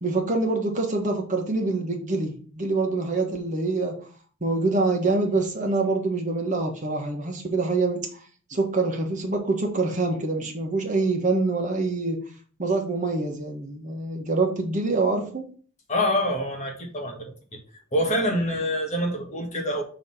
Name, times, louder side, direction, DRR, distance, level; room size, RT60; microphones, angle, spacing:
voice 1, 0.0-4.0 4.4-8.1 8.5-12.2 12.6-15.4, right 3 dB, 40° right, 1 dB, 1.3 m, -25 dB
voice 2, 15.9-17.6 17.9-19.8, equal, 35° left, 1 dB, 1.6 m, -26 dB
6.5 x 3.2 x 5.6 m, 0.42 s
head